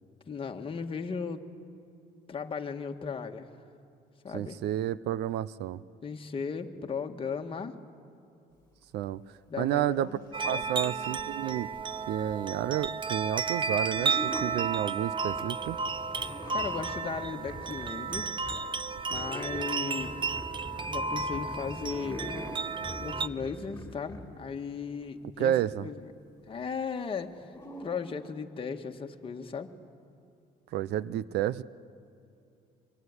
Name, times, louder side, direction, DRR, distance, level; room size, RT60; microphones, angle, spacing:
voice 1, 0.3-1.4 2.3-3.5 4.2-4.6 6.0-7.8 9.5-10.8 16.5-18.3 19.1-20.3 20.9-22.3 23.0-26.1 26.5-27.5 27.8-29.7, left 5 dB, 30° left, 4 dB, 1.7 m, -36 dB
voice 2, 4.3-5.8 8.9-9.2 9.6-10.1 10.4-11.7 12.1-15.8 25.4-25.9 30.7-31.6, right 11 dB, 75° right, 19 dB, 0.7 m, -30 dB
sound 1, 10.3-23.3, right 5 dB, 30° right, 0.7 m, -33 dB
sound 2, 13.4-13.5 13.9-14.7 15.3-18.6 19.1-24.3 27.4-27.9, left 1 dB, 15° left, 5.5 m, -42 dB
24.5 x 24.0 x 9.7 m, 2.7 s
cardioid pair, 110°, 17 cm